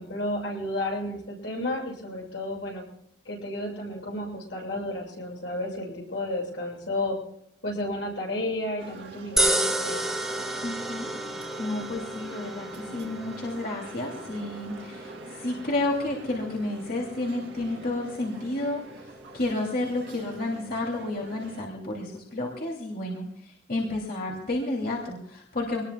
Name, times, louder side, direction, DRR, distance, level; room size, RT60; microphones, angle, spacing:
voice 1, 0.0-2.8 3.2-7.2 7.6-10.1, left 1 dB, 85° left, 0 dB, 7.6 m, -32 dB
sound 1, 8.8-21.6, right 1 dB, 70° right, 2.7 m, -46 dB
sound 2, 9.4-21.7, right 1 dB, ahead, 1.1 m, -33 dB
voice 2, 10.6-18.8 19.3-25.8, left 2 dB, 55° left, -1 dB, 2.8 m, -31 dB
24.5 x 20.0 x 2.3 m, 0.77 s
head